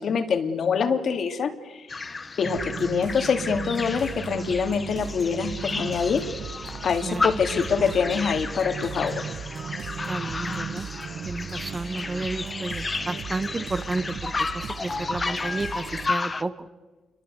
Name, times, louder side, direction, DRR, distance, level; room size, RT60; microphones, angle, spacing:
voice 1, 0.0-2.0 2.4-6.2 6.8-9.5, left 6 dB, 55° left, 7 dB, 2.7 m, -25 dB
sound 1, 1.9-16.4, left 3 dB, 25° left, 1.3 m, -33 dB
sound 2, 2.4-16.1, right 7 dB, 60° right, 1.1 m, -37 dB
voice 2, 7.5-7.9 10.1-10.9 11.2-16.7, right 3 dB, 25° right, 14 dB, 1.1 m, -32 dB
27.5 x 23.0 x 8.1 m, 1.3 s
cardioid pair, 90°, 0 cm